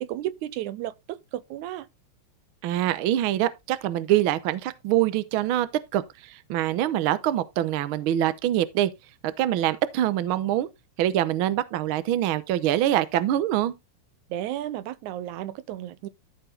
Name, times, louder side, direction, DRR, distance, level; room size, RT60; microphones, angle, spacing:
voice 1, 0.0-1.9 14.3-16.1, right 13 dB, 90° right, 2.2 m, -33 dB
voice 2, 2.6-8.9 9.2-10.7 11.0-13.7, right 12 dB, 75° right, 1.2 m, -24 dB
13.5 x 4.9 x 3.8 m
omnidirectional pair, 3.4 m